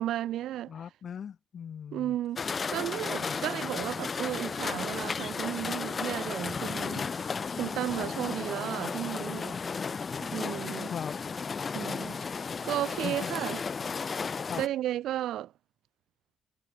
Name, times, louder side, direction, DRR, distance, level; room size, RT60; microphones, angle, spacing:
voice 1, 0.0-0.7 1.9-7.1 7.5-9.6 10.2-10.9 11.7-13.6 14.6-15.5, right 13 dB, 80° right, 3.4 m, -34 dB
voice 2, 0.7-2.2 3.2-3.7 10.9-11.2 13.0-13.3 14.5-14.6, left 8 dB, 55° left, 6.2 m, -39 dB
sound 1, 2.4-14.7, left 5 dB, 40° left, 1.6 m, -34 dB
cardioid pair, 90°, 0 cm